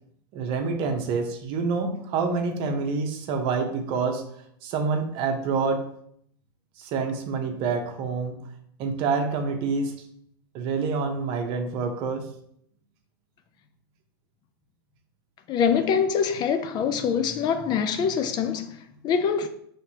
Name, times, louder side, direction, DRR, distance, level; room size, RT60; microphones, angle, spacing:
voice 1, 0.3-4.2 4.6-5.8 6.8-8.4 8.8-9.9 10.5-12.2, right 4 dB, 45° right, 0.8 m, -27 dB
voice 2, 15.5-19.5, left 7 dB, 35° left, 0.4 m, -24 dB
5.7 x 3.2 x 2.8 m
hypercardioid pair, 115°, 13 cm